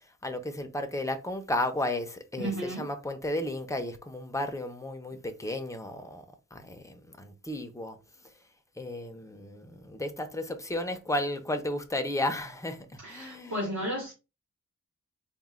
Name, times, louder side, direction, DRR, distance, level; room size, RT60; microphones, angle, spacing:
voice 1, 0.2-2.5 2.8-6.2 6.5-8.0 8.8-13.6, left 1 dB, 10° left, 0.5 m, -33 dB
voice 2, 2.4-2.9 13.0-14.1, equal, 60° right, 1.4 m, -33 dB
4.1 x 2.2 x 3.6 m
wide cardioid pair, 125°, 32 cm